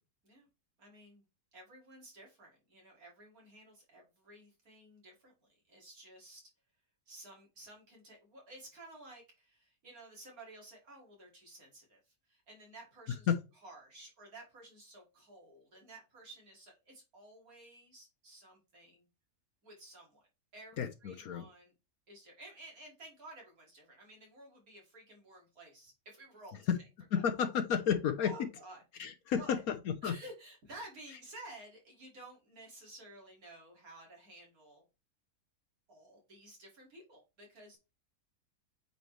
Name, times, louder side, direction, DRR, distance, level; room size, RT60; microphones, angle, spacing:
voice 1, 0.8-1.2 1.5-6.4 7.1-13.3 13.6-19.1 19.6-20.3 20.5-21.7 22.1-26.7 27.1-27.2 28.2-29.1 29.4-29.6 30.0-34.8 35.9-37.8, right 2 dB, 65° right, 2.9 m, -53 dB
voice 2, 20.8-21.5 26.7-26.8 27.1-28.3 29.0-30.1, left 7 dB, 70° left, 1.2 m, -31 dB
8.3 x 4.3 x 3.2 m
omnidirectional pair, 1.7 m